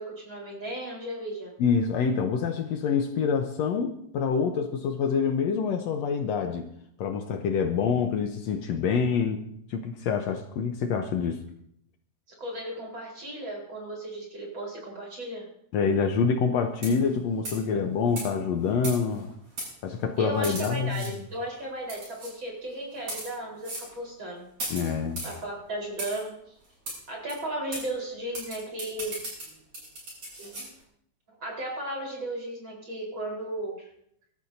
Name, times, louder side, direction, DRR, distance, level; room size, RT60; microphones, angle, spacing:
voice 1, 0.0-1.5 12.4-15.5 20.2-24.5 25.2-26.3 27.1-29.2 30.4-30.7 31.4-33.9, right 1 dB, 40° right, -2 dB, 4.8 m, -35 dB
voice 2, 1.6-6.7 7.0-9.4 9.7-11.4 15.7-19.3 19.8-21.0 24.7-25.2, left 6 dB, 70° left, 5 dB, 1.9 m, -26 dB
sound 1, 16.7-17.1 17.4-17.7 18.2-18.3 18.8-19.2 19.6-19.7 20.4-21.1 21.9-22.3 23.0-23.3 23.6-23.9 24.6-25.4 26.0-26.2 26.9-27.0 27.3-27.4 27.7-27.8 28.3-30.7, right 1 dB, 70° right, 8.5 m, -37 dB
24.5 x 13.0 x 2.7 m, 0.71 s
omnidirectional pair, 3.4 m